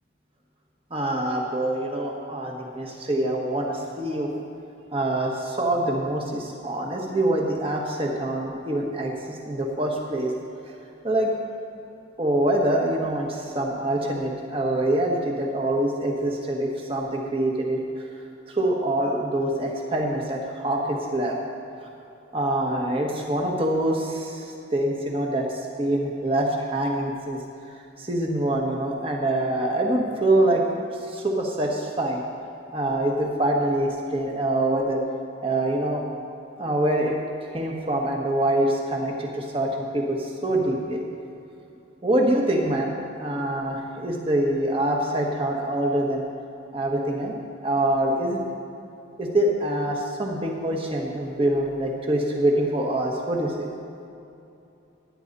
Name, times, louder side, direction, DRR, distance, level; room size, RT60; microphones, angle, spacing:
voice 1, 0.9-4.3 4.9-10.3 11.0-11.3 12.2-17.8 18.5-21.4 22.3-27.4 28.0-30.6 31.1-32.2 32.7-35.0 35.4-36.0 36.6-37.1 37.5-41.1 42.0-42.9 43.2-46.2 46.7-47.3 47.6-48.4 49.2-53.7, right 1 dB, 30° right, 0 dB, 1.6 m, -25 dB
15.5 x 10.0 x 4.1 m, 2.8 s
head